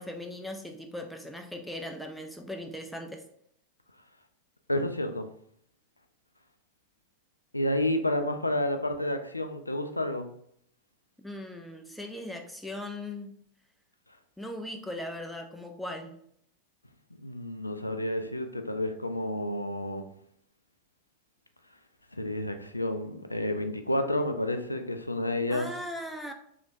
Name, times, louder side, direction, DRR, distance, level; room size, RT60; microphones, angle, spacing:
voice 1, 0.0-3.2 11.2-13.4 14.4-16.1 25.5-26.3, left 1 dB, ahead, 0.4 m, -39 dB
voice 2, 4.7-5.3 7.5-10.3 17.2-20.0 22.2-25.7, left 1 dB, 85° left, 0.3 m, -30 dB
3.2 x 2.9 x 2.5 m
figure-of-eight pair, 90°, 0 cm